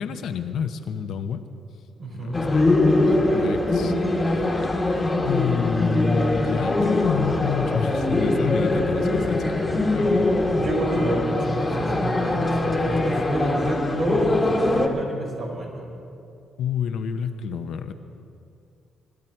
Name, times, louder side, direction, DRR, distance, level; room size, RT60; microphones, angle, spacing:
voice 1, 0.0-1.4 2.1-3.9 4.3-4.5 5.2-10.3 16.6-17.9, left 6 dB, 70° left, 8 dB, 0.9 m, -29 dB
voice 2, 2.0-2.4 10.5-15.9, right 2 dB, 50° right, -1 dB, 4.7 m, -29 dB
sound 1, 2.3-14.9, left 2 dB, 20° left, 1.7 m, -22 dB
21.0 x 12.5 x 4.6 m, 2.5 s
cardioid pair, 90°, 0 cm